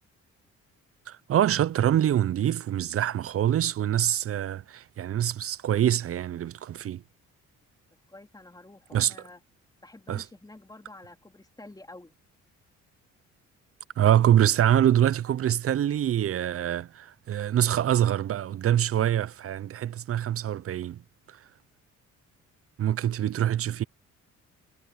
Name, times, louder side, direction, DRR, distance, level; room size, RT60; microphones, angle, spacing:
voice 1, 1.1-7.0 8.9-9.1 10.1-10.2 14.0-21.0 22.8-23.8, right 11 dB, 50° right, 0.6 m, -25 dB
voice 2, 8.1-9.4 9.8-12.1, left 2 dB, 10° left, 3.5 m, -48 dB
cardioid pair, 90°, 30 cm